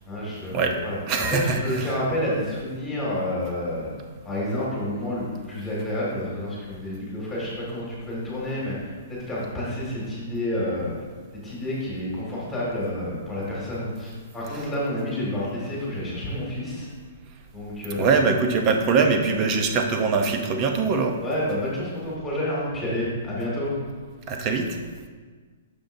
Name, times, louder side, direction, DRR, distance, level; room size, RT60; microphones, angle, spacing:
voice 1, 0.1-3.9 4.2-10.9 11.3-16.9 17.5-18.3 21.2-23.7, left 1 dB, 5° left, -7 dB, 2.0 m, -29 dB
voice 2, 1.1-1.6 18.0-21.2 24.3-24.8, right 4 dB, 25° right, 4 dB, 0.7 m, -22 dB
9.6 x 6.7 x 2.7 m, 1.5 s
hypercardioid pair, 170°, 0 cm